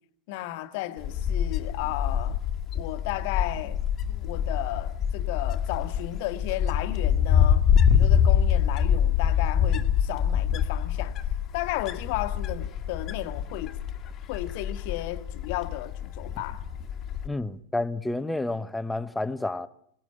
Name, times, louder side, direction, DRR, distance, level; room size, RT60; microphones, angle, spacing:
voice 1, 0.3-2.4 2.7-3.8 4.2-11.2 11.5-13.8 14.3-16.6, left 16 dB, 50° left, 1.5 m, -34 dB
Wind, 1.0-17.3, left 8 dB, 30° left, 1.6 m, -25 dB
voice 2, 17.2-19.7, left 2 dB, 5° left, 0.9 m, -30 dB
25.0 x 18.5 x 10.0 m
figure-of-eight pair, 90°, 0 cm